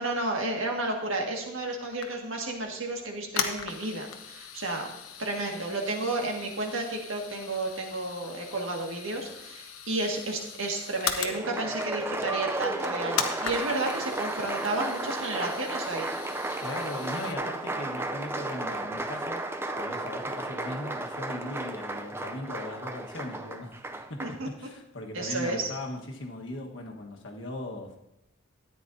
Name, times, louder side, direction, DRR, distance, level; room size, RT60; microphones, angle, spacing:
voice 1, 0.0-4.9 5.2-16.1 24.2-24.5 25.1-25.7, right 2 dB, 70° right, 1 dB, 1.7 m, -32 dB
sound 1, 1.9-2.6 3.1-11.4 11.8-12.1 12.4-12.5 12.8-17.3, left 7 dB, 85° left, 0.9 m, -38 dB
Applause, 11.2-24.4, right 2 dB, 10° right, 0.4 m, -34 dB
voice 2, 16.6-23.8 24.1-28.0, left 1 dB, 60° left, 1 dB, 1.3 m, -38 dB
13.5 x 9.4 x 2.7 m, 0.90 s
head